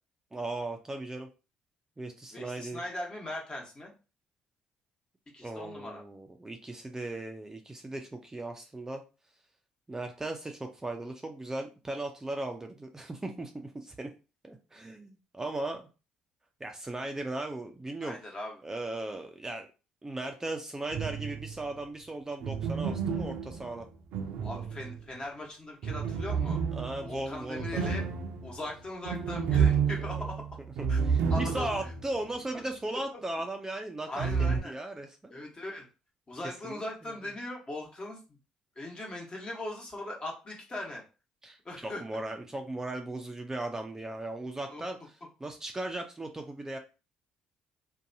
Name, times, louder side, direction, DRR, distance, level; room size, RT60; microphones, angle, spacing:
voice 1, 0.3-1.3 2.0-2.8 5.4-9.0 9.9-14.1 14.4-15.9 16.6-18.2 18.6-19.7 20.0-23.9 26.7-27.9 31.0-34.3 34.6-35.2 36.4-36.8 41.4-45.0 45.4-46.8, right 2 dB, 15° right, 4 dB, 0.4 m, -37 dB
voice 2, 2.3-3.9 5.3-6.0 18.0-18.6 24.4-26.6 27.0-28.0 28.4-30.4 30.9-31.0 31.3-31.7 33.1-33.2 34.1-34.8 35.3-35.8 36.3-38.2 38.8-41.0 41.6-42.0 44.7-44.8, left 1 dB, 30° left, 0 dB, 1.1 m, -39 dB
sound 1, 20.9-21.6 22.4-25.2 25.8-32.0 32.3-32.4 34.2-34.6, right 6 dB, 70° right, 0.5 m, -30 dB
2.6 x 2.2 x 2.6 m, 0.32 s
hypercardioid pair, 55°, 3 cm